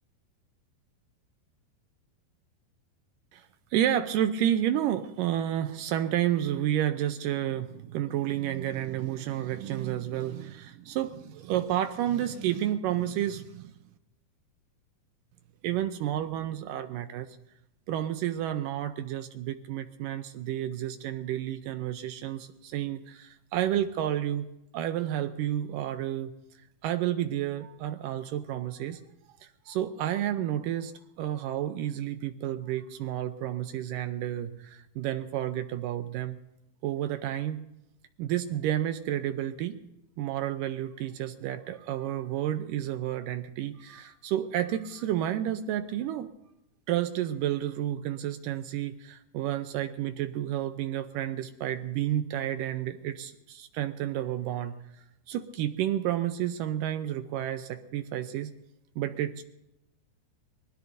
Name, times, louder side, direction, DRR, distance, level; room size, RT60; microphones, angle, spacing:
voice 1, 3.3-13.7 15.6-17.3 17.9-24.5 24.7-26.3 26.8-29.0 29.3-30.9 31.2-36.4 36.8-37.6 38.2-39.8 40.2-46.3 46.9-54.7 55.3-58.5 59.0-59.4, right 11 dB, 80° right, 9 dB, 2.0 m, -31 dB
25.0 x 20.0 x 2.6 m, 0.88 s
omnidirectional pair, 4.5 m